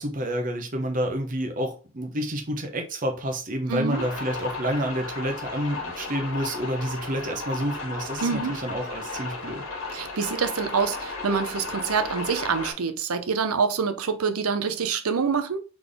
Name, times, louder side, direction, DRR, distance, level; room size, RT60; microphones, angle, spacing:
voice 1, 0.0-9.6, equal, 40° right, 0.8 m, -29 dB
voice 2, 3.7-4.0 8.2-8.5 9.9-15.6, right 5 dB, 85° right, 0.7 m, -26 dB
sound 1, 3.9-12.7, left 3 dB, 70° left, 1.5 m, -35 dB
3.9 x 3.5 x 3.4 m
head